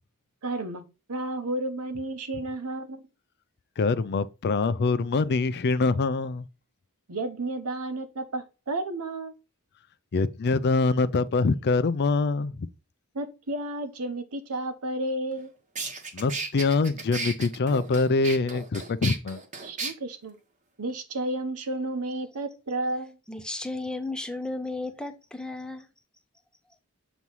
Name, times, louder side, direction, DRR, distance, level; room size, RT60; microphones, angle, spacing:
voice 1, 0.4-0.8 1.1-3.1 7.1-9.3 13.1-15.5 19.6-20.4 20.8-23.2, right 2 dB, 75° right, 1.0 m, -32 dB
voice 2, 3.8-6.4 10.1-12.7 16.1-19.4, left 3 dB, 50° left, 0.4 m, -24 dB
sound 1, 15.3-15.4 15.8-19.9, right 4 dB, 35° right, 1.1 m, -34 dB
voice 3, 23.3-25.9, left 2 dB, 5° left, 0.7 m, -34 dB
7.0 x 3.1 x 5.4 m
head